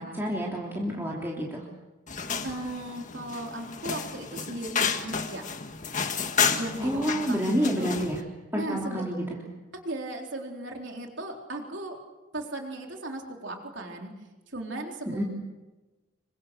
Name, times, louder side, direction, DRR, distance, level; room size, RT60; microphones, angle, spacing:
voice 1, 0.0-1.6 6.8-8.2 8.5-9.4 15.1-15.2, equal, 10° right, -3 dB, 3.3 m, -29 dB
sound 1, 2.1-8.2, left 6 dB, 40° left, 1.8 m, -31 dB
voice 2, 2.4-5.5 6.6-7.9 8.5-9.1 9.8-12.0 12.3-14.1 14.5-15.2, right 1 dB, 60° right, 2 dB, 4.0 m, -36 dB
27.0 x 24.0 x 6.8 m, 1.1 s
head